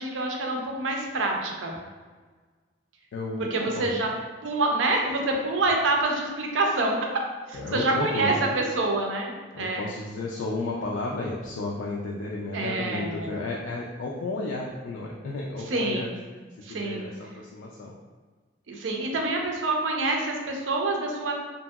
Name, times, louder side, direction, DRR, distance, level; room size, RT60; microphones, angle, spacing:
voice 1, 0.0-1.8 3.4-4.1 4.4-6.9 7.5-9.9 12.5-13.4 15.7-16.2 16.6-17.1 18.7-21.3, right 2 dB, 80° right, 1 dB, 0.5 m, -27 dB
voice 2, 3.1-3.9 7.5-8.3 9.5-16.1 16.7-18.0, left 2 dB, 75° left, -2 dB, 0.3 m, -33 dB
2.8 x 2.6 x 2.3 m, 1.4 s
head